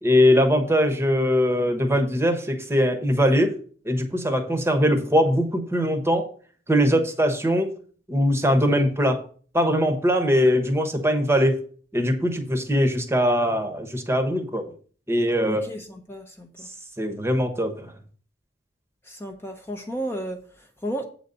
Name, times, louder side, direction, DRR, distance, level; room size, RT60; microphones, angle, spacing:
voice 1, 0.0-3.5 3.8-6.2 6.7-7.7 8.1-9.2 9.5-11.6 11.9-14.7 15.1-15.6 17.0-17.9, equal, 15° right, 6 dB, 1.1 m, -21 dB
voice 2, 15.5-16.7 19.0-21.0, right 1 dB, 15° left, 3 dB, 0.8 m, -33 dB
8.0 x 4.0 x 6.7 m, 0.44 s
head